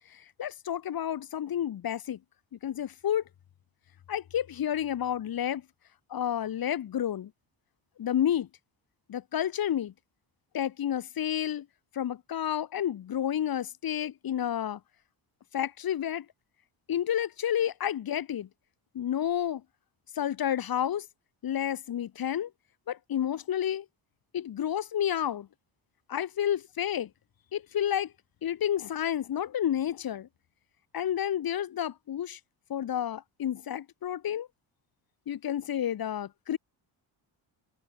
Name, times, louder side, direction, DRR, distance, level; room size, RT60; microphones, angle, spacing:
voice 1, 0.1-2.2 2.6-3.2 4.1-5.6 6.1-7.3 8.0-8.5 9.1-9.9 10.5-11.7 11.9-14.8 15.5-16.3 16.9-18.5 18.9-19.6 20.2-21.1 21.4-22.5 22.9-23.9 24.3-25.5 26.1-27.1 27.5-28.1 28.4-30.3 30.9-32.4 32.7-34.5 35.3-36.6, left 10 dB, 50° left, 1.1 m, -30 dB
wide cardioid pair, 160°, 47 cm